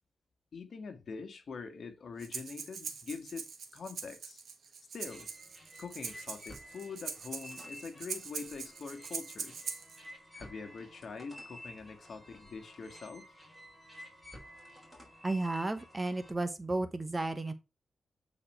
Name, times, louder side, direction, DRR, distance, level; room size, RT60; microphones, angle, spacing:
voice 1, 0.5-3.5 3.7-4.4 4.9-5.3 5.8-9.7 10.3-13.3, left 5 dB, 55° left, 1.6 m, -44 dB
Breathing, 2.2-10.0, right 6 dB, 70° right, 1.4 m, -43 dB
sound 1, 5.0-16.3, equal, 5° right, 3.9 m, -52 dB
voice 2, 15.2-17.5, right 2 dB, 20° right, 0.9 m, -33 dB
8.5 x 4.3 x 4.4 m
wide cardioid pair, 110°, 0 cm